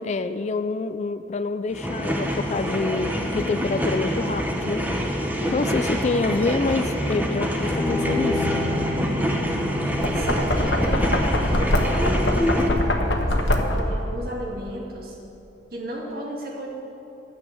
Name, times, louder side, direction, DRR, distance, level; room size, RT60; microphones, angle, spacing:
voice 1, 0.0-4.8 5.5-8.5, left 3 dB, 40° left, 12 dB, 0.3 m, -27 dB
sound 1, 1.7-12.7, equal, 10° right, 1.1 m, -26 dB
voice 2, 5.4-5.9 9.2-15.2 15.7-16.7, right 1 dB, 55° right, -1 dB, 2.2 m, -36 dB
Bowed string instrument, 7.6-10.9, left 3 dB, 15° left, 1.6 m, -30 dB
Knock, 9.9-14.0, left 1 dB, 70° left, 1.2 m, -23 dB
13.0 x 8.3 x 7.5 m, 2.9 s
head